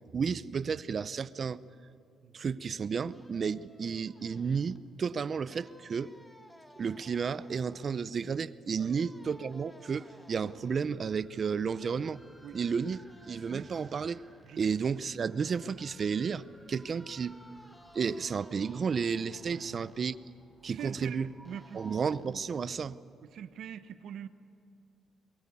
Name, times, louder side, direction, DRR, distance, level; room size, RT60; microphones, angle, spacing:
voice 1, 0.1-1.6 2.3-6.2 6.8-12.2 12.5-13.0 13.3-14.2 14.6-17.4 17.9-20.2 20.6-21.3 21.7-23.0, right 6 dB, 45° right, 16 dB, 0.7 m, -32 dB
sound 1, 3.1-4.8 5.5-8.0 8.7-10.9 11.7-14.6 15.3-20.2 21.4-22.3, left 1 dB, 10° left, 2.2 m, -58 dB
sound 2, 10.7-22.7, right 1 dB, 5° right, 3.9 m, -59 dB
voice 2, 19.5-19.9 20.7-22.0 23.2-24.3, right 9 dB, 70° right, 11 dB, 1.0 m, -44 dB
23.0 x 22.5 x 8.6 m, 2.4 s
cardioid pair, 90°, 0 cm